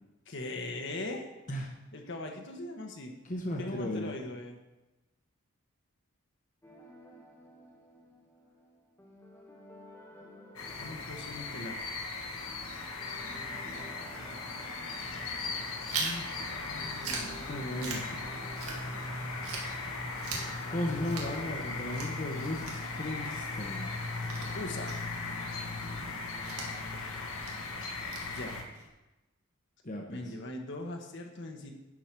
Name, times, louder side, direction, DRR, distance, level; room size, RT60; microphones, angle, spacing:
voice 1, 0.3-1.2 1.9-3.1 3.6-4.6 10.8-11.8 16.0-17.3 24.5-24.9 28.3-28.6 30.1-31.7, left 2 dB, 55° left, 2 dB, 1.2 m, -40 dB
voice 2, 3.2-4.2 17.5-18.2 20.7-23.9 29.8-30.2, left 1 dB, 35° left, 0 dB, 1.1 m, -36 dB
sound 1, 6.6-21.9, left 1 dB, 10° left, 1.5 m, -54 dB
sound 2, 10.6-28.6, left 3 dB, 70° left, 1.5 m, -38 dB
Chewing mastication, 15.9-19.1 19.4-28.9, right 4 dB, 85° right, 2.0 m, -42 dB
11.0 x 5.0 x 6.0 m, 1.0 s
head